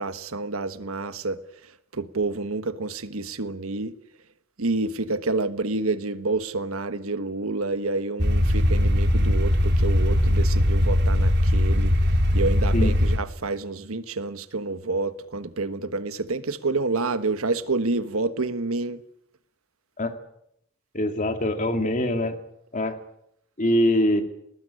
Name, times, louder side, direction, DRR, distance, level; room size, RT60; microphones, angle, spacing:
voice 1, 0.0-1.4 1.9-3.9 4.6-11.9 12.3-19.0, right 3 dB, 90° right, 1.3 m, -28 dB
sound 1, 8.2-13.2, left 1 dB, 55° right, 3.4 m, -20 dB
voice 2, 20.9-22.4 22.7-23.0 23.6-24.2, left 1 dB, 35° left, 2.4 m, -23 dB
19.5 x 19.5 x 10.0 m
head